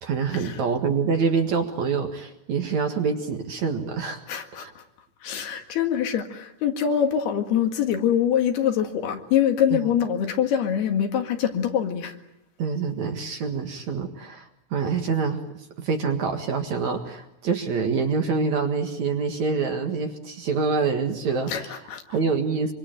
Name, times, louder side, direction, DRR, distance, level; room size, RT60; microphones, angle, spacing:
voice 1, 0.0-4.2 4.6-4.7 12.6-21.7 22.1-22.7, right 5 dB, 55° right, 5 dB, 2.6 m, -26 dB
voice 2, 4.3-4.8 5.2-12.2 21.5-22.0, left 9 dB, 75° left, 6 dB, 3.9 m, -24 dB
25.5 x 25.0 x 9.0 m, 0.81 s
omnidirectional pair, 4.7 m